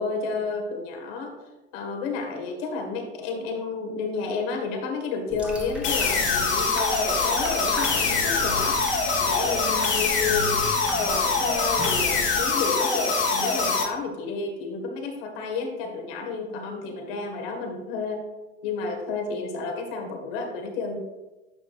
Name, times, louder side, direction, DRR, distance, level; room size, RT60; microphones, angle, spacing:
voice 1, 0.0-1.3 1.7-8.8 9.1-10.6 11.0-18.2 18.6-21.0, left 4 dB, 60° left, 3 dB, 1.8 m, -31 dB
sound 1, 5.3-12.4, left 1 dB, 5° right, 1.4 m, -36 dB
sound 2, 5.8-13.8, left 4 dB, 35° left, 1.7 m, -24 dB
9.7 x 5.9 x 2.5 m, 1.1 s
hypercardioid pair, 100°, 33 cm